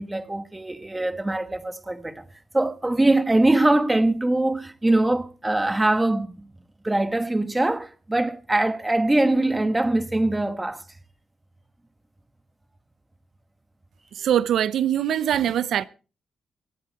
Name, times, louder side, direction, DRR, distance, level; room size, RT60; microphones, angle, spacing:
voice 1, 0.0-2.2 2.5-6.4 6.8-10.8, right 2 dB, 10° right, 1.2 m, -22 dB
voice 2, 14.1-15.8, right 10 dB, 75° right, 0.6 m, -22 dB
23.5 x 8.5 x 4.5 m
cardioid pair, 115°, 0 cm